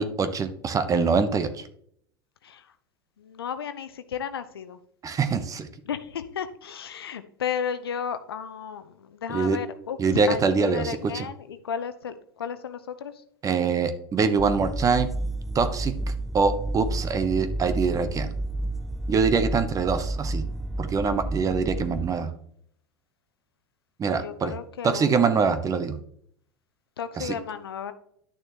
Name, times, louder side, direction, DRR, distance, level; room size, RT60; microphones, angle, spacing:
voice 1, 0.0-1.6 5.0-5.7 9.3-9.6 10.0-11.3 13.4-15.1 15.5-15.9 16.3-18.3 19.1-20.4 20.8-22.3 24.0-24.5 24.8-26.0 27.2-27.4, right 5 dB, 25° right, 10 dB, 1.0 m, -24 dB
voice 2, 3.2-4.8 5.9-10.0 10.3-13.1 24.2-25.1 27.0-27.9, left 7 dB, 80° left, 11 dB, 0.8 m, -33 dB
sound 1, 14.4-22.1, right 2 dB, ahead, 0.4 m, -31 dB
11.0 x 6.4 x 3.0 m, 0.67 s
hypercardioid pair, 85°, 12 cm